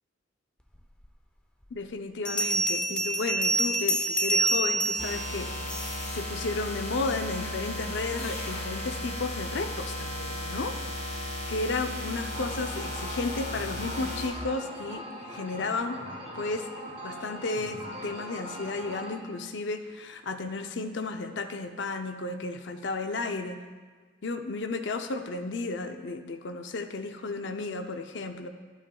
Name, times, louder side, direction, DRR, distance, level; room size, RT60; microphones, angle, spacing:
Bell, 1.0-1.1 2.2-6.1, right 1 dB, 5° left, 0.5 m, -27 dB
voice 1, 1.7-10.8 11.1-16.0 16.3-16.7 17.0-23.6 24.2-28.5, left 3 dB, 65° left, 7 dB, 0.5 m, -33 dB
sound 1, 5.0-14.3, left 1 dB, 35° left, 1.5 m, -35 dB
sound 2, 12.3-19.2, equal, 30° right, 1.5 m, -41 dB
11.5 x 8.5 x 2.3 m, 1.5 s
head